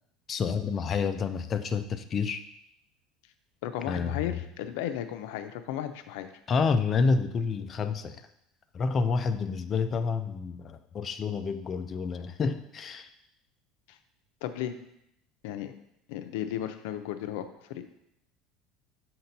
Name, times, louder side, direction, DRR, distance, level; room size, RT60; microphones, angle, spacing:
voice 1, 0.3-2.4 3.9-4.4 6.5-8.2 8.7-13.1, left 5 dB, 25° left, 9 dB, 0.4 m, -29 dB
voice 2, 3.6-6.3 13.9-14.0 14.4-14.7 15.4-15.8 16.1-17.8, left 10 dB, 75° left, 8 dB, 0.5 m, -35 dB
6.5 x 2.9 x 5.3 m, 0.78 s
cardioid pair, 155°, 0 cm